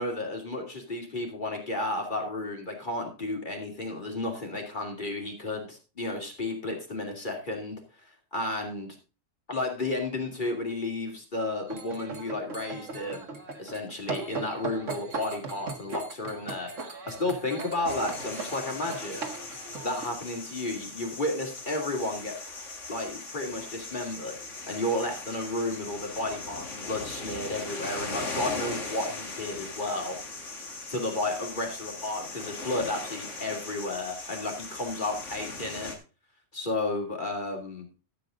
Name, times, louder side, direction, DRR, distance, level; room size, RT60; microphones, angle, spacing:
voice 1, 0.0-7.8 8.3-8.9 9.5-13.2 13.6-16.7 17.1-19.3 19.8-22.4 22.9-24.4 24.7-30.2 30.9-35.9 36.5-37.9, left 2 dB, 40° left, 2 dB, 2.9 m, -32 dB
sound 1, 11.7-20.1, right 4 dB, 75° right, 2.1 m, -38 dB
sound 2, 17.8-35.9, left 3 dB, 70° left, 2.3 m, -39 dB
12.5 x 8.3 x 3.8 m, 0.33 s
omnidirectional pair, 1.3 m